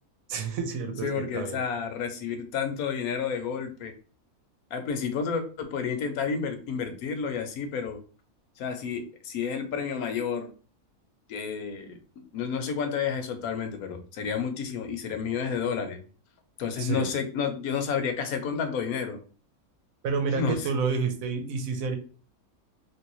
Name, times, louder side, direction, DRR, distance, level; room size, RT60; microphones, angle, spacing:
voice 1, 0.3-1.6 16.8-17.1 20.0-22.0, right 5 dB, 70° right, 6 dB, 1.0 m, -29 dB
voice 2, 1.0-3.9 4.7-8.0 8.6-10.5 11.3-12.0 12.3-16.0 16.6-19.2 20.3-20.7, left 6 dB, 80° left, 6 dB, 1.1 m, -30 dB
3.1 x 2.7 x 2.9 m, 0.39 s
omnidirectional pair, 1.6 m